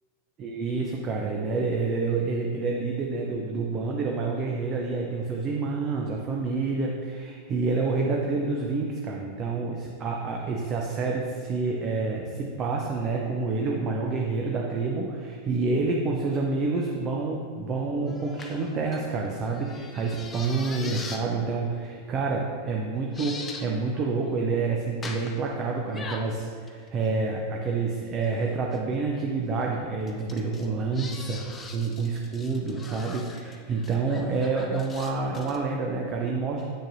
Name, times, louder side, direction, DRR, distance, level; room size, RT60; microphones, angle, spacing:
voice 1, 0.4-31.4 31.7-36.7, right 4 dB, 30° right, 0 dB, 0.7 m, -28 dB
sound 1, 18.1-21.3 21.9-22.1 22.6-22.7 23.1-23.7 23.9-24.4 25.0-25.5 25.9-27.4 28.5-28.8 30.1-35.6, left 4 dB, 20° left, 0.6 m, -42 dB
7.6 x 6.3 x 2.7 m, 2.2 s
figure-of-eight pair, 90°, 0 cm